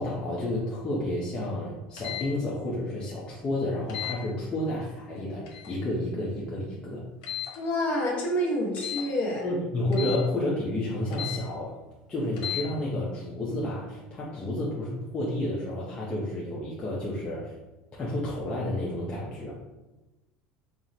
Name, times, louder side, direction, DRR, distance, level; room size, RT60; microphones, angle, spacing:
voice 1, 0.0-7.1 9.4-11.7 12.1-17.5 18.0-19.5, left 1 dB, 25° left, -6 dB, 0.8 m, -30 dB
sound 1, 2.0-2.3 3.9-4.2 5.5-5.8 7.2-7.6 8.8-9.1 9.9-10.2 11.1-11.4 12.3-12.7, left 11 dB, 75° left, 1.1 m, -34 dB
voice 2, 7.6-9.4, equal, 40° left, -2 dB, 1.1 m, -27 dB
4.5 x 2.1 x 4.0 m, 1.0 s
cardioid pair, 135°, 4 cm